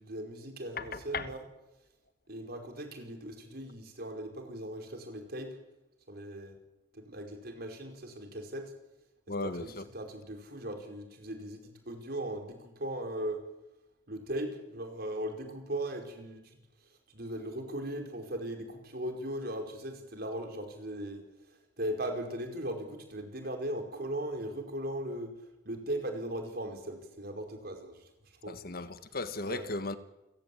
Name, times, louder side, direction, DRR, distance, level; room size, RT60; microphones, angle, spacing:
voice 1, 0.0-1.4 2.3-5.5 6.1-6.5 6.9-8.7 9.4-13.4 14.1-16.4 17.1-21.2 21.8-25.3 25.6-28.0 28.4-28.6 29.5-29.6, right 1 dB, 55° right, 5.0 m, -38 dB
voice 2, 0.8-1.3 9.3-9.8 28.5-30.0, left 3 dB, 55° left, 1.5 m, -36 dB
29.0 x 17.0 x 8.8 m
head